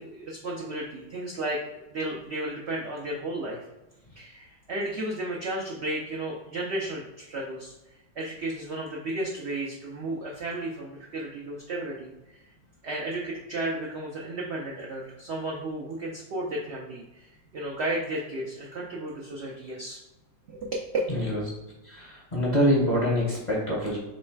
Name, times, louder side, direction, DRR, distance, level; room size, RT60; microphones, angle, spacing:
voice 1, 0.0-3.7 4.1-7.7 8.2-12.4 12.8-20.0 20.5-20.8, right 1 dB, 80° right, -3 dB, 0.6 m, -33 dB
voice 2, 21.1-21.4 21.8-24.0, equal, 40° left, -5 dB, 0.6 m, -25 dB
3.1 x 3.1 x 4.5 m, 1.0 s
omnidirectional pair, 1.9 m